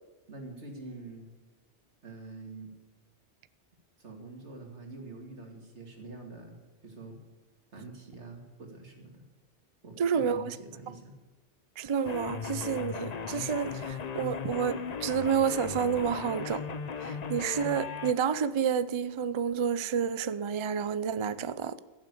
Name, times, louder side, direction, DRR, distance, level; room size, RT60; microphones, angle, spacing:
voice 1, 0.3-1.3 2.0-2.7 4.0-6.6 6.8-7.2 7.7-9.2 9.8-11.1, right 3 dB, 75° right, 2.7 m, -45 dB
voice 2, 10.0-10.6 11.8-16.6 17.0-21.8, right 7 dB, 50° right, 0.3 m, -29 dB
sound 1, 12.1-18.1, left 6 dB, 40° left, 0.7 m, -37 dB
15.5 x 7.3 x 8.3 m
omnidirectional pair, 1.2 m